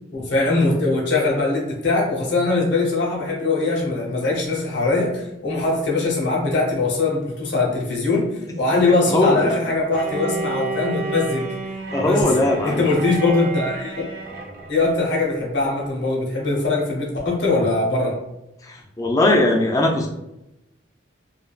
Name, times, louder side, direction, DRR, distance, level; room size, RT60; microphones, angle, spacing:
voice 1, 0.1-11.5 12.0-12.2 12.6-14.1 14.7-18.2, left 3 dB, 60° left, -3 dB, 0.7 m, -21 dB
voice 2, 9.1-9.6 11.9-12.9 18.6-20.1, left 1 dB, 15° left, 1 dB, 0.3 m, -19 dB
Bowed string instrument, 9.9-14.8, right 3 dB, 50° right, 0.6 m, -31 dB
3.2 x 2.2 x 2.3 m, 0.90 s
head